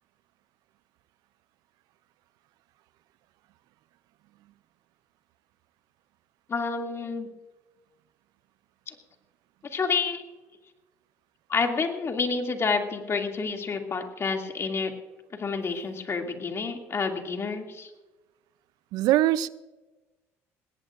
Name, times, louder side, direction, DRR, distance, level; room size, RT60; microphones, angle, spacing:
voice 1, 6.5-7.3 9.6-10.2 11.5-14.9 15.4-17.9, left 4 dB, 40° left, 2.4 m, -29 dB
voice 2, 18.9-19.5, right 14 dB, 70° right, 0.5 m, -22 dB
20.0 x 18.0 x 2.5 m
supercardioid pair, 70°, 7 cm